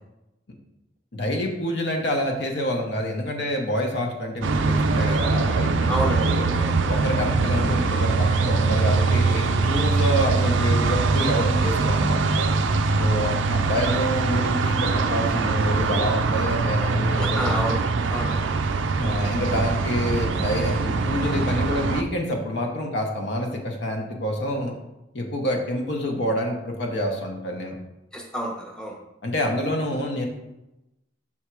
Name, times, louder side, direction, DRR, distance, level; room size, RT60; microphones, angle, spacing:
voice 1, 1.1-6.5 6.9-12.5 13.0-17.8 19.0-24.7 25.1-27.7 29.2-30.3, equal, 60° left, 2 dB, 0.9 m, -27 dB
sound 1, 4.4-22.0, right 4 dB, 80° right, 0.4 m, -22 dB
voice 2, 5.9-6.3 6.5-6.7 17.2-17.8 18.0-18.6 28.1-29.0, right 1 dB, 5° left, -1 dB, 0.8 m, -29 dB
5.9 x 3.6 x 4.6 m, 0.93 s
head